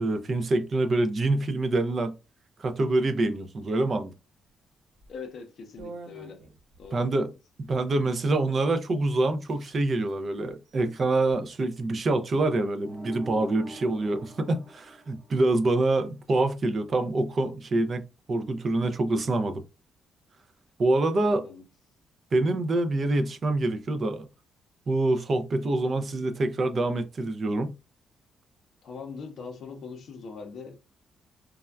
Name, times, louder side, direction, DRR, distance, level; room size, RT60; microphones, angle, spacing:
voice 1, 0.0-2.1 2.6-4.1 6.9-7.3 7.6-18.0 18.3-19.6 20.8-21.4 22.3-24.3 24.9-27.7, right 2 dB, 30° right, 0.4 m, -26 dB
sound 1, 5.0-5.2 5.8-6.9 7.9-8.3 8.9-9.0 9.2-9.7 10.0-10.1 10.6-11.3, right 3 dB, 85° right, 1.0 m, -47 dB
voice 2, 5.1-6.4 6.8-7.2 21.2-21.6 28.8-30.8, left 5 dB, 50° left, 0.6 m, -41 dB
sound 2, 12.8-15.8, equal, 5° left, 1.0 m, -45 dB
3.3 x 2.2 x 2.2 m
cardioid pair, 175°, 0 cm